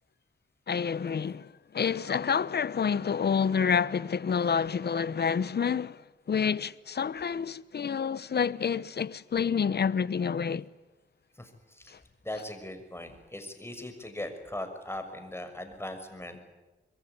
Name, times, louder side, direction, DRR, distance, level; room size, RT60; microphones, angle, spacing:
voice 1, 0.7-6.0 6.3-10.7 11.9-12.0, left 6 dB, 60° left, 1.0 m, -28 dB
voice 2, 11.4-12.0 12.2-16.4, left 1 dB, 10° left, 6.3 m, -39 dB
26.5 x 22.5 x 9.7 m
cardioid pair, 75°, 19 cm